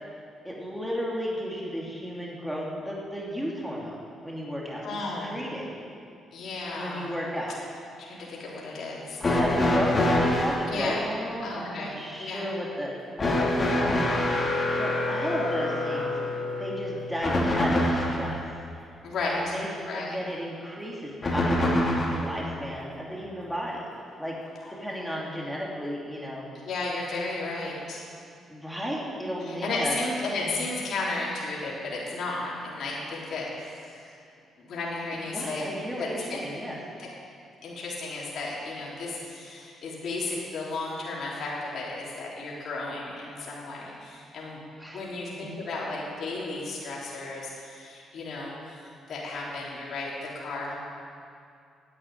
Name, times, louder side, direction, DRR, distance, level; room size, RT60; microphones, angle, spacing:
voice 1, 0.4-5.7 6.7-7.5 9.3-12.9 13.9-14.1 14.7-16.1 16.6-18.4 19.2-19.7 19.9-23.8 24.2-24.4 24.7-26.4 28.5-29.9 30.4-30.5 35.2-36.8 44.8-45.0 45.3-45.6, equal, 5° right, -4 dB, 2.7 m, -33 dB
voice 2, 4.8-5.3 6.3-7.1 8.0-9.2 10.7-11.0 11.4-12.5 19.0-19.5 19.9-20.2 26.6-28.1 29.4-34.1 34.6-35.7 36.0-36.4 37.6-44.6 44.9-48.8 49.1-50.8, left 3 dB, 65° left, -5 dB, 3.5 m, -34 dB
sound 1, 9.2-10.7 13.2-18.3 21.2-22.3 23.5-23.6 24.7-24.8, left 1 dB, 30° left, 2.9 m, -25 dB
10.5 x 8.7 x 9.1 m, 2.4 s
cardioid pair, 90°, 0 cm